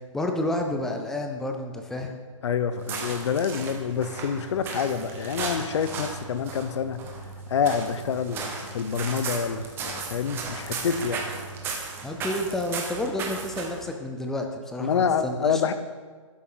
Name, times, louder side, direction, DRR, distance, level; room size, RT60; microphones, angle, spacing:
voice 1, 0.1-2.1 12.0-15.6, left 1 dB, ahead, 3 dB, 0.4 m, -30 dB
voice 2, 2.4-7.0 7.5-11.2 14.8-15.7, left 6 dB, 60° left, 12 dB, 0.7 m, -27 dB
sound 1, 2.8-13.9, right 4 dB, 15° right, 0.9 m, -35 dB
12.0 x 7.0 x 3.8 m, 1.5 s
hypercardioid pair, 160°, 17 cm